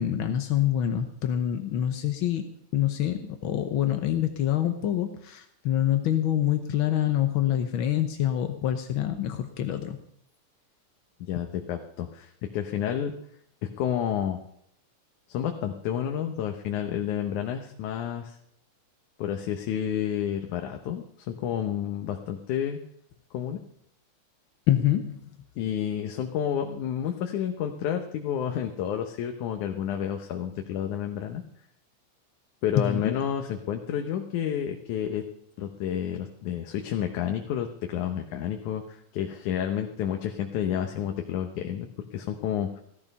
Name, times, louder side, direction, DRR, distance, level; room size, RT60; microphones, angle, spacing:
voice 1, 0.0-10.0 24.7-25.3 32.8-33.2, left 11 dB, 70° left, 7 dB, 1.2 m, -26 dB
voice 2, 11.3-13.1 13.8-14.4 15.3-18.4 19.2-22.8 23.3-23.6 25.6-31.4 32.6-35.3 35.6-42.8, left 9 dB, 85° left, 4 dB, 2.5 m, -30 dB
16.5 x 13.0 x 5.5 m, 0.72 s
omnidirectional pair, 3.4 m